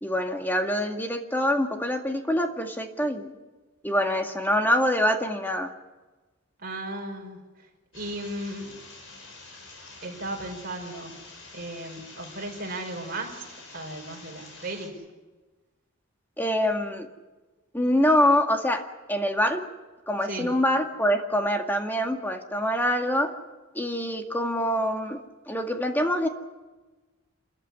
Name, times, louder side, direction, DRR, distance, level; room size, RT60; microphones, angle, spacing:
voice 1, 0.0-3.3 3.8-5.7 16.4-17.1 17.7-19.6 20.1-23.3 23.7-26.3, equal, 10° left, 4 dB, 1.9 m, -25 dB
voice 2, 6.6-7.7 7.9-8.8 10.0-11.2 11.5-15.0 20.2-20.5, right 1 dB, 45° right, 1 dB, 5.3 m, -36 dB
sound 1, 7.9-14.9, left 3 dB, 75° left, 5.7 m, -47 dB
28.0 x 14.0 x 9.7 m, 1.2 s
head